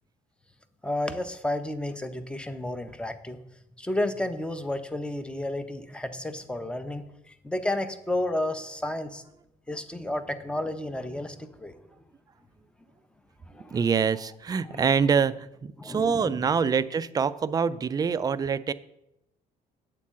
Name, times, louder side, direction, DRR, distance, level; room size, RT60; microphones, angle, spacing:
voice 1, 0.8-3.4 3.8-9.2 9.7-11.8 13.5-13.8 14.7-14.8 15.8-16.5, left 1 dB, 5° left, 10 dB, 0.7 m, -32 dB
voice 2, 13.7-18.7, right 6 dB, 20° right, 13 dB, 0.3 m, -25 dB
8.5 x 4.5 x 7.4 m, 0.85 s
cardioid pair, 110°, 17 cm